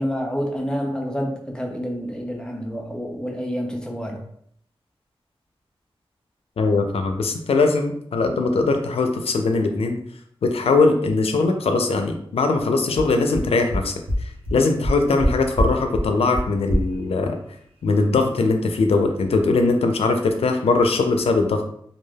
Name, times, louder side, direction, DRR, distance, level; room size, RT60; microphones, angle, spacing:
voice 1, 0.0-4.2, equal, 10° left, 1 dB, 0.5 m, -28 dB
voice 2, 6.6-10.0 10.4-13.9 14.5-17.3 17.8-21.6, left 3 dB, 90° left, 5 dB, 0.4 m, -20 dB
sound 1, 12.9-13.0 13.3-13.4 13.7-13.8 14.1-14.2 14.4-14.5 14.8-15.3 15.5-15.7 15.9-16.0 16.3-16.4 16.7-16.8, equal, 70° right, 0.8 m, -22 dB
3.2 x 2.3 x 2.2 m, 0.67 s
wide cardioid pair, 115°, 10 cm